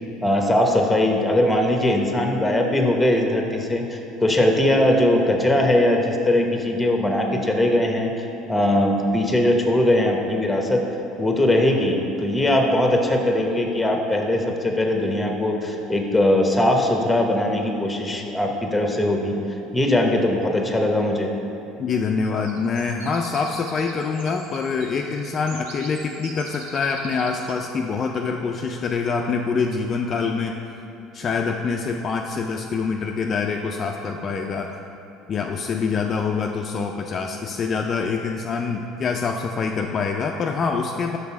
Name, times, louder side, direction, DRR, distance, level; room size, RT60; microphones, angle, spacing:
voice 1, 0.2-10.9 11.2-19.3 19.7-21.3, left 1 dB, 10° left, 2 dB, 0.8 m, -20 dB
voice 2, 21.8-30.6 31.1-34.8 35.3-41.2, left 5 dB, 40° left, 2 dB, 0.3 m, -25 dB
sound 1, 22.2-27.6, right 3 dB, 90° right, 0.8 m, -43 dB
5.3 x 4.0 x 5.8 m, 3.0 s
supercardioid pair, 90°, 0 cm